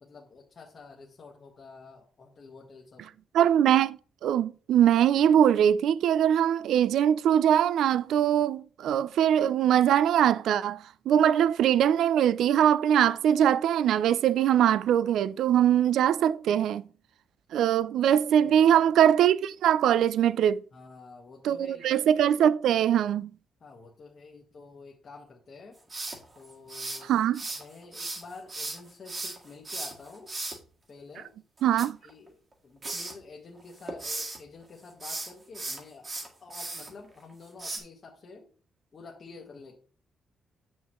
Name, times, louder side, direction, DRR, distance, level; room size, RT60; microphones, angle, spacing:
voice 1, 0.0-3.1 18.4-18.8 20.7-22.0 23.6-25.8 26.3-27.2 27.6-30.3 30.9-31.3 32.0-38.5 38.9-39.8, left 4 dB, 35° left, 1.2 m, -49 dB
voice 2, 3.3-16.8 17.5-20.6 21.4-23.3 27.1-27.4 31.6-32.0, right 10 dB, 80° right, 0.3 m, -22 dB
sound 1, 25.9-27.6 27.9-30.6 31.6-32.5 32.8-33.1 33.6-34.4 34.9-36.9 37.6-37.8, right 2 dB, 25° right, 1.6 m, -36 dB
8.2 x 6.3 x 3.0 m
cardioid pair, 175°, 0 cm